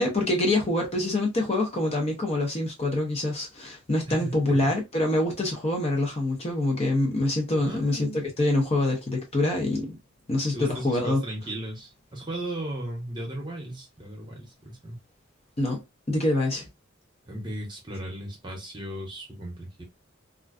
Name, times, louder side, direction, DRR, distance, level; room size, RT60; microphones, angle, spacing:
voice 1, 0.0-10.0 10.3-11.2 15.6-15.8 16.1-16.7, left 1 dB, 30° left, 0.6 m, -25 dB
voice 2, 4.1-4.7 7.6-8.2 10.5-15.0 17.3-19.8, right 1 dB, 20° right, 0.9 m, -36 dB
2.4 x 2.2 x 2.3 m
head